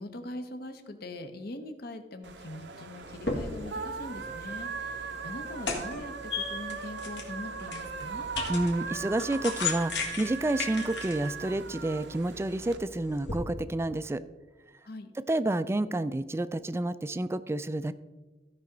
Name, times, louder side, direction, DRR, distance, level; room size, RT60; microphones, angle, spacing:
voice 1, 0.0-8.3 14.8-15.1, left 1 dB, 60° left, 8 dB, 0.9 m, -42 dB
sound 1, 2.2-12.8, right 5 dB, 65° right, 0.6 m, -39 dB
sound 2, 3.0-13.4, left 4 dB, 75° left, 1.8 m, -38 dB
voice 2, 8.5-14.2 15.3-17.9, right 1 dB, 15° right, 14 dB, 0.3 m, -29 dB
15.5 x 5.6 x 3.9 m, 1.2 s
head